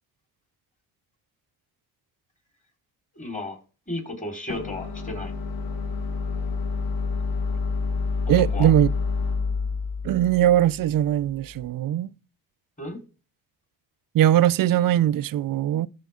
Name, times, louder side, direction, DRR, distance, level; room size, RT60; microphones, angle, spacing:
voice 1, 3.1-3.6 3.9-5.3 8.3-8.7 12.8-13.0, left 2 dB, 20° left, 4.4 m, -33 dB
sound 1, 4.5-11.6, left 4 dB, 60° left, 1.9 m, -28 dB
voice 2, 8.3-8.9 10.0-12.1 14.1-15.9, right 12 dB, 60° right, 0.5 m, -20 dB
14.0 x 4.7 x 3.7 m
cardioid pair, 95°, 38 cm